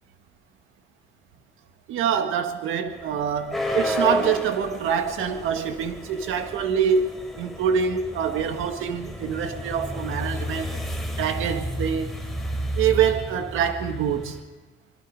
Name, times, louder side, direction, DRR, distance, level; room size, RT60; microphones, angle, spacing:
voice 1, 1.9-10.7 11.2-12.2 12.8-14.4, right 7 dB, 90° right, 7 dB, 1.8 m, -25 dB
sound 1, 2.9-14.4, equal, ahead, 4.1 m, -31 dB
27.0 x 21.5 x 5.2 m, 1.2 s
cardioid pair, 90°, 20 cm